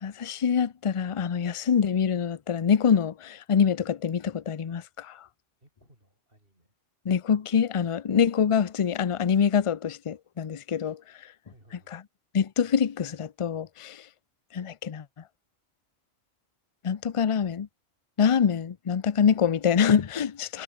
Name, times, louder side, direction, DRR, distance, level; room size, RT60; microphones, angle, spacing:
voice 1, 0.0-5.3 7.1-11.0 11.9-12.0 12.3-14.1 14.5-15.0 16.8-17.7 18.2-20.6, left 7 dB, 40° left, 0.5 m, -25 dB
voice 2, 5.6-6.8 7.3-7.4 11.4-12.0 20.5-20.6, right 1 dB, 45° right, 8.4 m, -61 dB
omnidirectional pair, 1.3 m